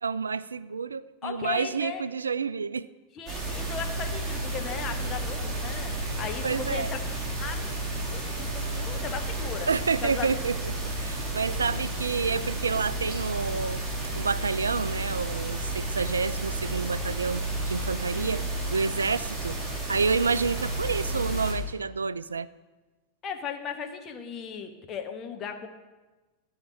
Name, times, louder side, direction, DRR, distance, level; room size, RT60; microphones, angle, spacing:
voice 1, 0.0-2.9 6.4-6.9 9.7-10.5 11.0-13.8 14.2-19.6 19.9-22.5, right 5 dB, 75° right, 18 dB, 0.3 m, -29 dB
voice 2, 1.2-2.0 3.1-7.0 7.4-7.5 8.0-9.7 10.0-10.3 18.0-19.2 23.2-25.7, left 7 dB, 30° left, 5 dB, 1.3 m, -37 dB
sound 1, 3.3-21.5, right 2 dB, 10° right, 4.3 m, -32 dB
13.0 x 5.8 x 8.9 m, 1.2 s
figure-of-eight pair, 90°, 0 cm